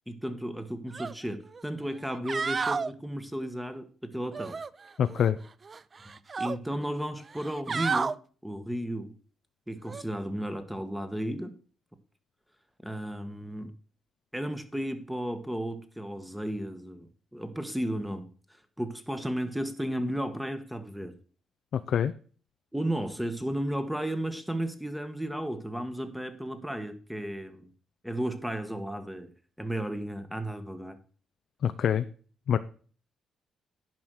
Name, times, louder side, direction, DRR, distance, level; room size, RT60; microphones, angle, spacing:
voice 1, 0.1-4.6 6.4-8.2 8.4-9.1 9.7-11.5 12.8-13.7 14.3-18.3 18.8-21.2 22.7-27.7 28.0-29.3 29.6-31.0, right 1 dB, 5° right, 1.4 m, -34 dB
sound 1, 0.9-1.1 1.5-1.6 2.1-2.9 4.3-5.3 5.6-6.6 7.3-8.1 9.8-10.0, right 5 dB, 35° right, 0.4 m, -32 dB
voice 2, 5.0-5.4 21.9-22.1 31.6-32.0 32.5-32.6, left 8 dB, 65° left, 0.5 m, -25 dB
10.5 x 5.3 x 6.3 m
cardioid pair, 90°, 0 cm